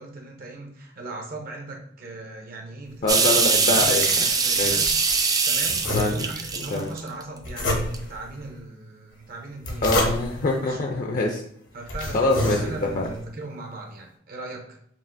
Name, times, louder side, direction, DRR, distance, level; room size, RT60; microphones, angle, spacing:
voice 1, 0.0-3.3 3.7-4.9 5.4-10.2 10.6-11.0 11.7-14.8, right 2 dB, 50° right, 2 dB, 0.6 m, -39 dB
voice 2, 3.0-4.2 4.6-4.9 5.9-6.1 6.7-6.9 9.8-11.4 12.1-13.1, left 2 dB, 45° left, 1 dB, 0.4 m, -24 dB
sound 1, 3.1-7.2 7.7-8.0, right 4 dB, 20° right, 0.4 m, -22 dB
sound 2, 3.4-5.2 5.6-6.5 7.4-8.2 9.4-10.5 11.2-11.3 11.8-13.1, left 1 dB, 75° left, 1.0 m, -29 dB
5.6 x 2.4 x 2.6 m, 0.70 s
head